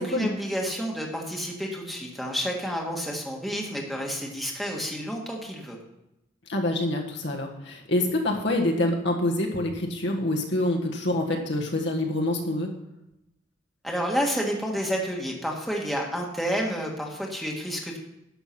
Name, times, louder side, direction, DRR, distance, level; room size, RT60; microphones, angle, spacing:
voice 1, 0.0-5.8 13.8-18.0, equal, ahead, -1 dB, 1.7 m, -30 dB
voice 2, 6.5-12.7, left 1 dB, 60° left, 1 dB, 1.6 m, -26 dB
11.5 x 6.9 x 5.9 m, 0.88 s
head